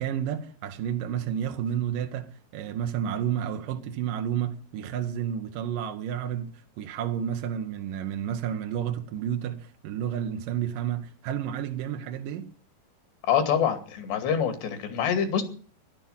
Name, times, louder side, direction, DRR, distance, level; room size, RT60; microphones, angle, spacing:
voice 1, 0.0-12.5, right 9 dB, 65° right, 2.4 m, -31 dB
voice 2, 13.2-15.4, left 8 dB, 75° left, 4.5 m, -25 dB
14.0 x 12.0 x 7.3 m
omnidirectional pair, 4.9 m